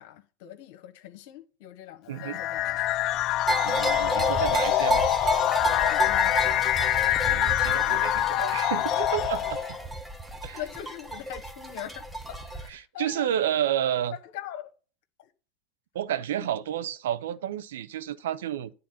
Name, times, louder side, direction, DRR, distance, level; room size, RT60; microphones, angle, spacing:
voice 1, 0.0-2.8 5.9-6.7 10.5-13.3 13.9-14.7 15.2-15.3 16.3-16.5, left 12 dB, 65° left, 1.3 m, -42 dB
voice 2, 2.1-2.4 3.6-5.1 7.3-9.6 10.4-10.6 12.7-14.2 15.9-18.7, right 11 dB, 75° right, 0.7 m, -30 dB
sound 1, 2.2-9.8, left 15 dB, 50° left, 0.3 m, -25 dB
sound 2, 3.5-12.7, right 2 dB, 5° right, 1.2 m, -31 dB
9.6 x 4.0 x 5.9 m
hypercardioid pair, 90°, 0 cm